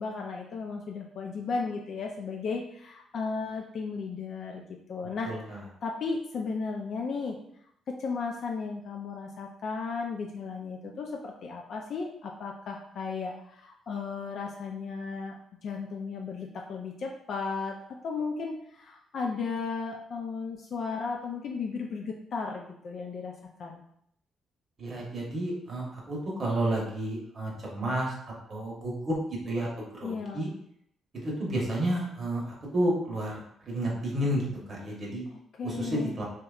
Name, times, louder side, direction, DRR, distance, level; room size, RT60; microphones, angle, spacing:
voice 1, 0.0-4.6 4.9-5.3 5.8-7.4 8.0-17.8 18.0-23.3 23.6-23.8 30.0-30.4 35.3-36.2, left 4 dB, 60° left, 1 dB, 0.3 m, -35 dB
voice 2, 5.2-5.6 24.8-29.1 29.4-30.5 31.1-33.4 33.7-34.4 34.7-35.2 35.6-36.2, right 1 dB, 45° right, -3 dB, 0.9 m, -31 dB
2.8 x 2.2 x 2.3 m, 0.70 s
cardioid pair, 90°, 0 cm